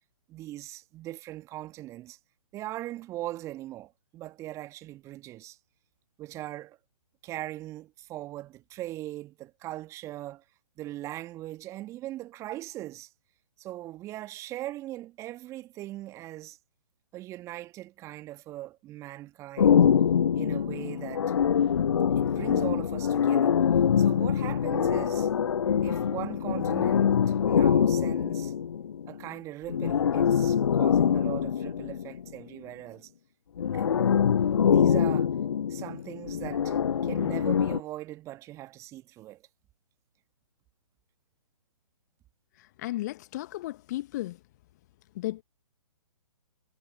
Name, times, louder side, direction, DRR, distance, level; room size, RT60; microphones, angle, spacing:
voice 1, 0.3-2.2 2.5-5.6 6.2-6.8 7.2-10.4 10.8-13.1 13.6-16.6 17.1-19.9 20.3-21.2 22.2-23.6 24.0-25.3 25.8-28.5 29.1-33.1 33.7-34.0 34.6-35.3 35.7-39.4, right 15 dB, 15° right, 1.5 m, -40 dB
sound 1, 19.6-29.2 29.7-32.3 33.6-37.8, left 8 dB, 55° left, 0.5 m, -24 dB
voice 2, 42.8-44.4 45.1-45.4, left 16 dB, 30° left, 1.2 m, -34 dB
figure-of-eight pair, 130°, 17 cm